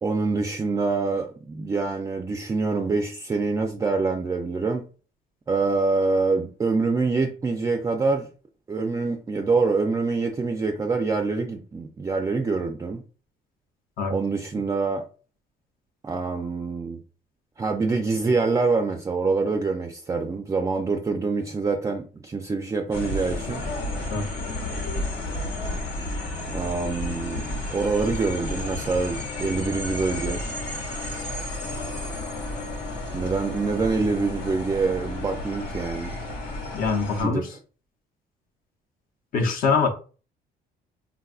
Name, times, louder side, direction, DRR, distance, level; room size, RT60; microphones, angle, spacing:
voice 1, 0.0-4.8 5.5-8.3 8.7-13.0 14.1-15.0 16.0-17.0 17.6-23.6 26.5-30.4 33.1-36.1 37.2-37.4, right 4 dB, 20° right, 0.3 m, -25 dB
sound 1, 22.9-37.2, left 1 dB, 75° left, 0.9 m, -32 dB
voice 2, 36.7-37.5 39.3-39.9, left 4 dB, 55° left, 0.6 m, -23 dB
3.5 x 2.3 x 2.3 m
cardioid pair, 110°, 17 cm